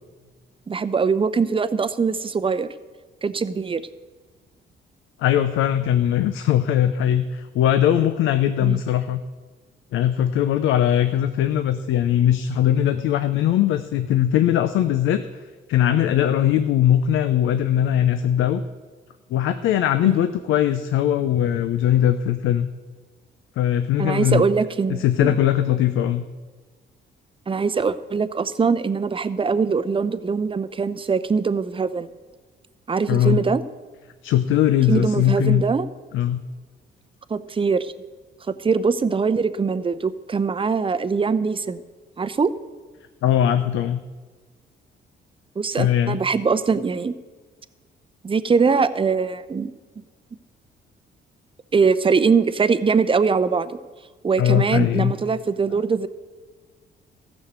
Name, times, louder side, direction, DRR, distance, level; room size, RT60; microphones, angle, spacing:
voice 1, 0.7-2.7 3.2-3.8 8.6-8.8 20.0-20.2 24.0-25.4 27.5-32.1 32.9-33.6 34.9-35.9 37.3-37.9 38.6-41.8 42.2-42.5 45.6-47.1 48.2-49.7 51.7-53.7 54.2-56.1, right 5 dB, 25° right, 12 dB, 0.7 m, -22 dB
voice 2, 5.2-9.2 9.9-15.2 15.7-18.6 19.3-22.7 23.6-24.4 24.9-26.2 33.1-33.4 34.2-35.6 36.1-36.4 43.2-44.0 45.8-46.2 54.4-55.1, left 11 dB, 85° left, 10 dB, 0.6 m, -20 dB
14.5 x 6.4 x 8.0 m, 1.3 s
cardioid pair, 90°, 20 cm